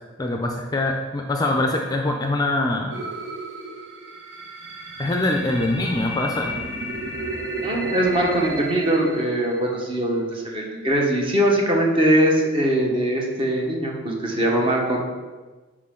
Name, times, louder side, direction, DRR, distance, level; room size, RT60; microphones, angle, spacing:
voice 1, 0.2-2.9 5.0-6.6, left 2 dB, 20° left, 2 dB, 0.5 m, -23 dB
sound 1, 2.9-10.0, right 1 dB, 65° right, 1.4 m, -32 dB
voice 2, 7.6-15.0, right 1 dB, 25° right, -1 dB, 1.3 m, -21 dB
9.8 x 5.0 x 3.8 m, 1.3 s
head